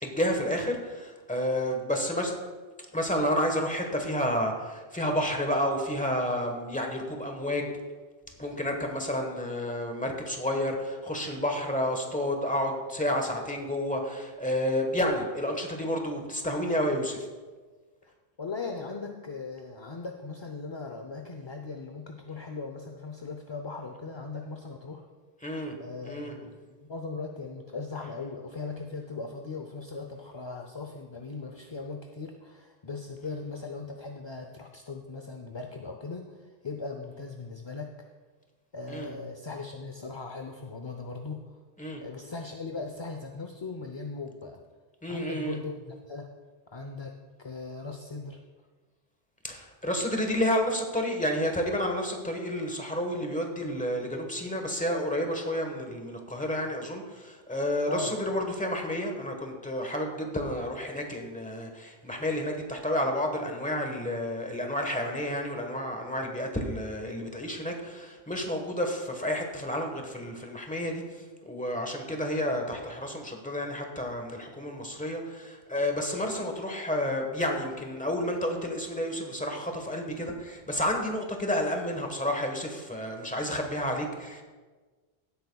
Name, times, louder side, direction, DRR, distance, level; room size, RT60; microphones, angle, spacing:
voice 1, 0.0-2.3 2.9-7.7 8.4-17.3 25.4-25.7 26.0-26.3 38.9-39.1 41.8-42.0 45.0-45.6 49.4-84.4, left 1 dB, 5° left, 3 dB, 1.1 m, -30 dB
voice 2, 18.4-25.0 25.8-37.9 38.7-41.6 42.0-44.6 45.1-46.3 46.7-48.4 57.9-58.2, left 4 dB, 35° left, 3 dB, 0.5 m, -39 dB
16.5 x 8.3 x 2.3 m, 1.4 s
omnidirectional pair, 1.1 m